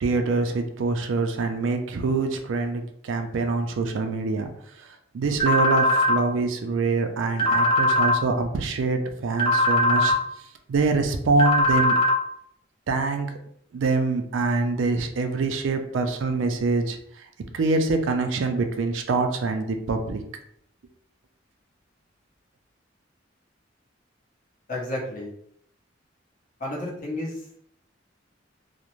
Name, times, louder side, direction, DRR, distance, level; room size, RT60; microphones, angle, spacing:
voice 1, 0.0-4.5 5.1-10.2 10.7-12.0 12.9-13.3 13.7-17.0 17.5-20.2, right 3 dB, 90° right, 5 dB, 0.4 m, -25 dB
sound 1, 5.4-6.2 7.4-8.2 9.4-10.2 11.4-12.2, left 1 dB, 30° left, 0.5 m, -20 dB
voice 2, 24.7-25.3 26.6-27.4, left 1 dB, 45° left, -3 dB, 0.8 m, -31 dB
2.4 x 2.0 x 3.0 m, 0.68 s
head